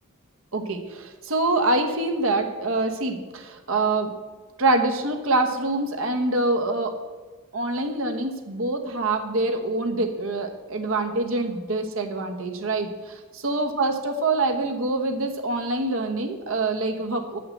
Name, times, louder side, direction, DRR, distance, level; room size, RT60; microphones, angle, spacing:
voice 1, 0.5-4.1 4.6-7.0 7.5-17.4, right 2 dB, 65° right, 5 dB, 1.1 m, -25 dB
7.9 x 5.7 x 7.7 m, 1.4 s
head